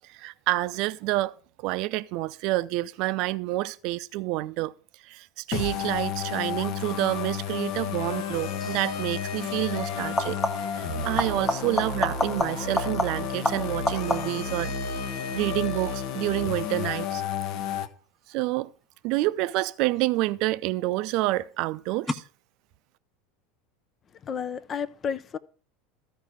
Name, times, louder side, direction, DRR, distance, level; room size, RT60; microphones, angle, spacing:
voice 1, 0.1-1.3 1.6-4.7 5.0-10.4 10.7-17.2 18.3-18.7 19.0-22.2, right 18 dB, 60° right, 0.5 m, -28 dB
sound 1, 5.5-17.9, left 6 dB, 60° left, 1.0 m, -31 dB
sound 2, 8.6-8.9 10.0-10.8 11.2-14.5 20.0-20.6 22.1-22.2, left 1 dB, 15° left, 0.9 m, -29 dB
voice 2, 24.2-25.4, left 7 dB, 35° left, 0.7 m, -31 dB
13.5 x 4.7 x 6.3 m
hypercardioid pair, 80°, 0 cm